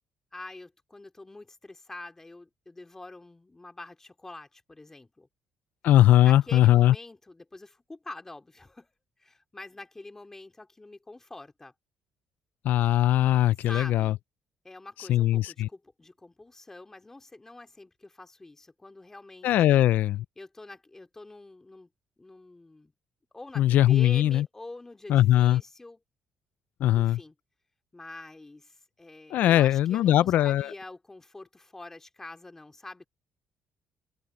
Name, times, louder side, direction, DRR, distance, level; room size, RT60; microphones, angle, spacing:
voice 1, 0.3-5.3 6.2-8.9 9.2-11.7 13.6-14.2 14.6-19.9 20.4-21.9 22.2-22.9 23.3-26.0 26.9-27.3 27.9-33.1, left 2 dB, 15° left, 2.5 m, -45 dB
voice 2, 5.8-6.9 12.6-14.1 15.1-15.7 19.4-20.2 23.6-24.4 25.1-25.6 26.8-27.2 29.3-30.7, left 13 dB, 75° left, 0.4 m, -20 dB
open air
cardioid pair, 125°, 3 cm